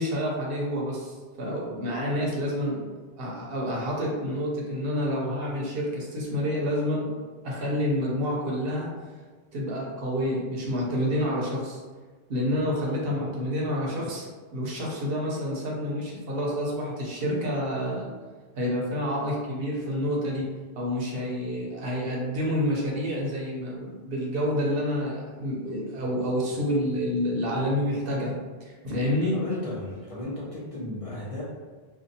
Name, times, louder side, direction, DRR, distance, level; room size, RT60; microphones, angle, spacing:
voice 1, 0.0-7.2 7.4-9.0 9.5-11.8 12.3-18.1 18.6-20.5 20.8-28.3 28.6-29.4, equal, 65° right, -3 dB, 0.8 m, -28 dB
voice 2, 29.3-31.4, left 1 dB, 40° left, -8 dB, 0.6 m, -35 dB
2.6 x 2.3 x 2.6 m, 1.4 s
omnidirectional pair, 1.1 m